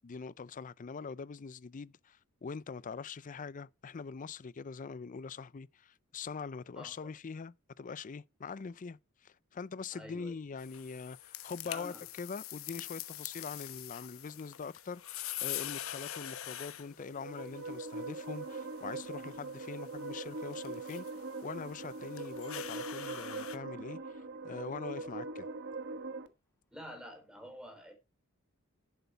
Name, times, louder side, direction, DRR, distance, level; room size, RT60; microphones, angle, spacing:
voice 1, 0.0-21.1 21.4-25.5, left 5 dB, 40° left, 0.4 m, -43 dB
voice 2, 6.8-7.1 9.9-10.4 11.6-12.0 26.7-27.9, equal, 5° right, 3.8 m, -48 dB
sound 1, 10.6-23.6, left 13 dB, 85° left, 1.0 m, -45 dB
sound 2, 16.9-26.3, right 3 dB, 60° right, 1.3 m, -42 dB
Telephone, 18.8-18.9 19.5-24.4 24.9-25.0 25.3-25.5 25.9-26.2 26.5-26.6, right 3 dB, 15° left, 6.1 m, -63 dB
11.0 x 8.1 x 4.5 m
head